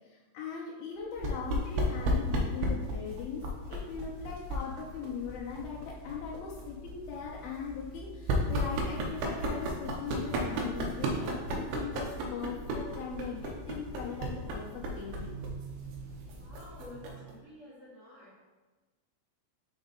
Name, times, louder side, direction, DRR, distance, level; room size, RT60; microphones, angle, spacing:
voice 1, 0.3-3.4 3.7-15.3, left 6 dB, 85° left, -4 dB, 2.3 m, -40 dB
sound 1, 1.2-17.3, equal, 75° right, 2.5 m, -35 dB
voice 2, 16.3-18.3, left 1 dB, 45° left, -10 dB, 1.4 m, -50 dB
6.3 x 3.9 x 3.9 m, 1.2 s
omnidirectional pair, 4.9 m